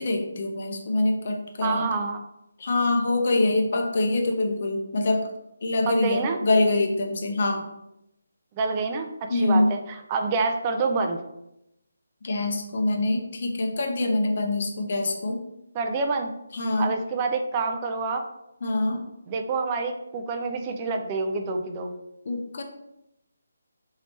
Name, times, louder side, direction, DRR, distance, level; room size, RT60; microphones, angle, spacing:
voice 1, 0.0-1.9 2.6-5.3 5.6-7.7 9.3-9.7 12.2-15.4 16.5-16.9 18.6-19.0 22.3-22.6, left 2 dB, 50° left, 3 dB, 0.6 m, -24 dB
voice 2, 1.6-2.2 5.9-6.4 8.6-11.2 15.7-16.3 16.8-18.2 19.3-21.9, right 4 dB, 25° right, 4 dB, 0.4 m, -27 dB
3.0 x 2.7 x 3.3 m, 0.86 s
figure-of-eight pair, 150°, 0 cm